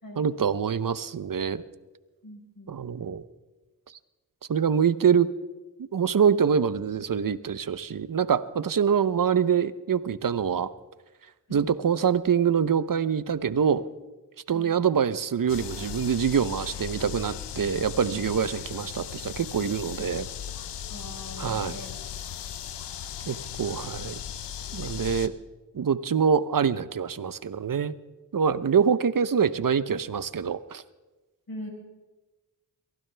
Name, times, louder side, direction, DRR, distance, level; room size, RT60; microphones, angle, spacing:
voice 1, 0.2-1.6 2.7-3.2 4.5-5.3 5.9-10.7 11.5-13.8 14.5-20.3 21.4-21.8 23.3-24.2 24.7-25.3 25.7-27.9 28.3-30.8, right 7 dB, 55° right, 15 dB, 0.8 m, -25 dB
voice 2, 2.2-2.8 11.5-11.7 14.5-14.7 20.9-22.0 31.5-31.7, left 1 dB, 60° left, 1 dB, 4.8 m, -41 dB
sound 1, 15.5-25.3, left 9 dB, 85° left, 0.7 m, -37 dB
22.5 x 16.0 x 3.4 m, 1.2 s
cardioid pair, 40°, 40 cm